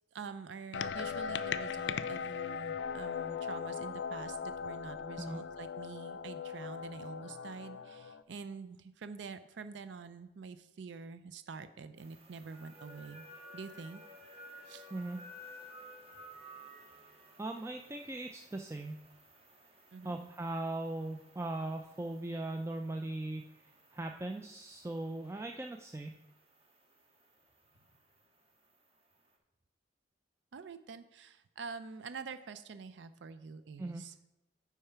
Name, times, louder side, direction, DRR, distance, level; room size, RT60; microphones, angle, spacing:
voice 1, 0.1-13.2 13.5-14.0 14.7-14.9 19.9-20.3 30.5-34.1, right 5 dB, 80° right, 11 dB, 0.4 m, -46 dB
sound 1, 0.7-8.2, left 7 dB, 80° left, 0.4 m, -39 dB
sound 2, 12.0-29.3, equal, 35° right, 1.4 m, -56 dB
voice 2, 17.4-19.0 20.0-23.4 23.9-26.1 33.8-34.0, right 2 dB, 15° right, 4 dB, 0.4 m, -39 dB
8.6 x 4.7 x 5.7 m, 0.97 s
head